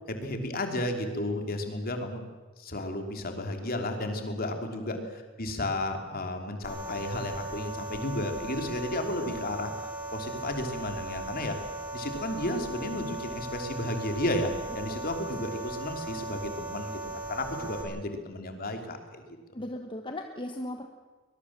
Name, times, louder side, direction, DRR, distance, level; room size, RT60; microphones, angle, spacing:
voice 1, 0.1-2.2 2.6-9.7 10.1-11.6 11.9-19.2, left 1 dB, 45° left, 5 dB, 3.1 m, -33 dB
voice 2, 4.7-5.1 15.3-15.4 19.5-20.9, left 1 dB, 25° left, 4 dB, 1.3 m, -38 dB
sound 1, 6.6-17.8, right 2 dB, 15° right, 6.0 m, -38 dB
22.5 x 21.0 x 7.4 m, 1.3 s
head